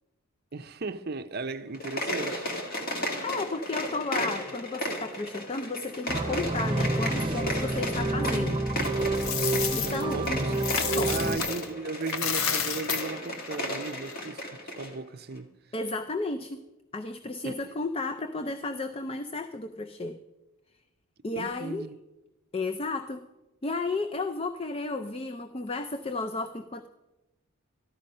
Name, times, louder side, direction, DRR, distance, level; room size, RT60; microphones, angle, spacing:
voice 1, 0.5-2.5 10.1-10.5 11.1-15.5 17.4-17.7 21.4-22.0, right 3 dB, 45° right, 0.6 m, -36 dB
sound 1, 1.7-14.9, left 1 dB, 40° left, 1.8 m, -34 dB
voice 2, 3.2-8.6 9.4-10.2 11.0-11.1 15.7-16.6 16.9-20.2 21.2-21.9 22.5-23.3 23.6-26.9, left 3 dB, 25° left, 0.4 m, -33 dB
sound 2, 6.1-11.4, right 2 dB, 20° right, 0.9 m, -29 dB
Coin (dropping), 8.8-11.7 12.0-14.3, left 7 dB, 70° left, 1.0 m, -31 dB
14.0 x 11.5 x 5.4 m
head